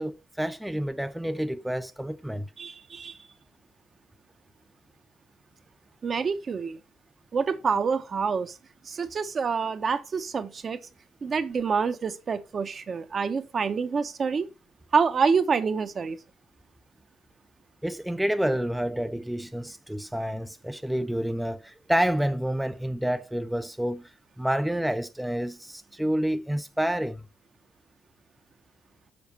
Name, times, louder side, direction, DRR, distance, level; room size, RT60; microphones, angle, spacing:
voice 1, 0.0-2.5 17.8-24.1 24.4-27.3, equal, 5° right, 0.5 m, -29 dB
voice 2, 2.6-3.2 6.0-6.8 7.3-8.6 8.8-10.8 11.2-14.5 14.9-16.2, right 5 dB, 45° right, 0.9 m, -27 dB
7.0 x 4.3 x 6.6 m
supercardioid pair, 80°, 0 cm